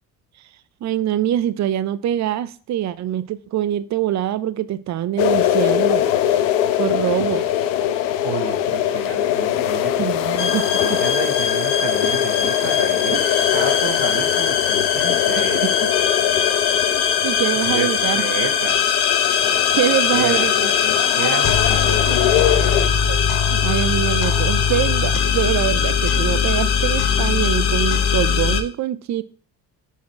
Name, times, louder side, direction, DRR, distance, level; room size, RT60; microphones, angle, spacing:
voice 1, 0.8-6.1 6.8-7.5 10.0-11.0 13.1-13.5 15.4-15.5 17.2-18.2 19.8-20.7 22.1-22.2 23.1-23.2 23.5-29.2, right 11 dB, 35° right, 0.5 m, -24 dB
sound 1, 5.2-22.9, left 11 dB, 90° left, 0.7 m, -22 dB
voice 2, 8.2-10.1 10.8-13.2 13.5-15.7 17.6-17.9 18.2-18.8 19.4-22.2, right 8 dB, 60° right, 1.4 m, -31 dB
sound 2, 10.4-28.6, left 7 dB, 50° left, 1.0 m, -20 dB
5.8 x 4.5 x 4.3 m
hypercardioid pair, 60°, 49 cm